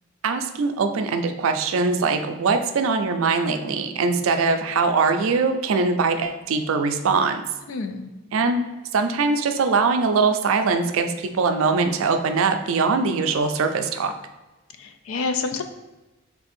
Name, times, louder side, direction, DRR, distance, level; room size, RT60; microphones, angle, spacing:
voice 1, 0.2-7.4 8.3-8.6 8.9-14.1, right 4 dB, 70° right, 7 dB, 0.4 m, -22 dB
voice 2, 7.7-8.1 14.8-15.6, left 4 dB, 75° left, 7 dB, 0.4 m, -28 dB
3.4 x 2.6 x 4.1 m, 1.1 s
head